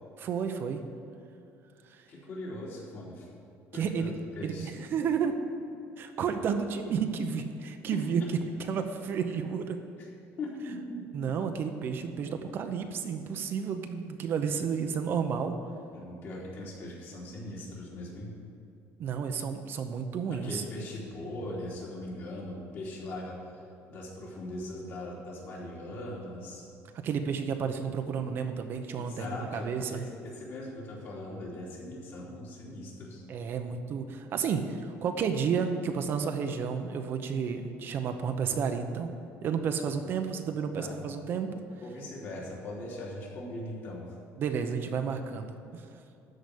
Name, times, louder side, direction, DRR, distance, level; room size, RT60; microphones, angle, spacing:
voice 1, 0.2-0.8 1.9-2.0 3.7-4.1 4.4-5.3 6.0-8.2 8.6-9.8 11.1-15.6 19.0-20.6 27.0-30.0 33.3-39.1 39.4-41.5 44.4-45.8, right 6 dB, 45° right, 7 dB, 0.7 m, -31 dB
voice 2, 2.1-3.3 3.7-4.7 10.0-10.1 10.4-11.3 12.2-12.3 15.9-18.3 20.3-23.6 23.9-26.6 28.9-33.2 39.8-40.1 40.8-41.0 41.8-44.2, left 1 dB, 45° left, -4 dB, 3.2 m, -40 dB
13.0 x 5.0 x 8.3 m, 2.7 s
cardioid pair, 155°, 5 cm